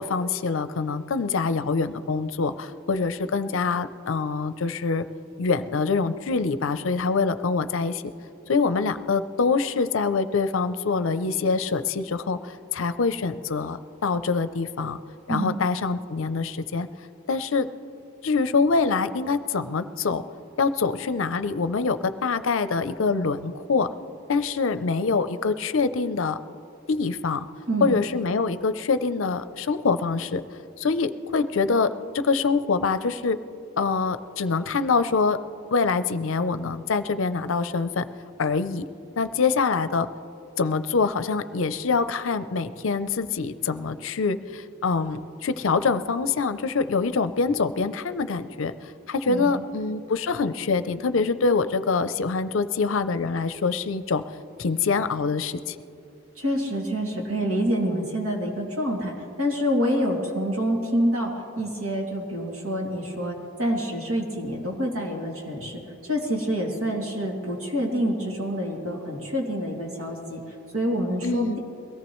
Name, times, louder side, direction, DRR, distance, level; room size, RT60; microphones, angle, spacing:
voice 1, 0.0-5.1 5.4-8.0 8.5-15.0 15.3-16.9 17.3-17.7 18.2-20.2 20.6-23.9 24.3-26.4 26.9-27.5 27.8-30.4 30.8-33.4 33.8-35.4 35.7-38.1 38.4-38.9 39.2-40.1 40.6-54.2 54.6-55.8 71.2-71.6, left 4 dB, 70° left, 12 dB, 0.5 m, -25 dB
voice 2, 49.3-49.6 56.4-70.4 70.7-71.6, equal, 90° right, -1 dB, 2.6 m, -27 dB
22.5 x 17.5 x 3.1 m, 2.8 s
head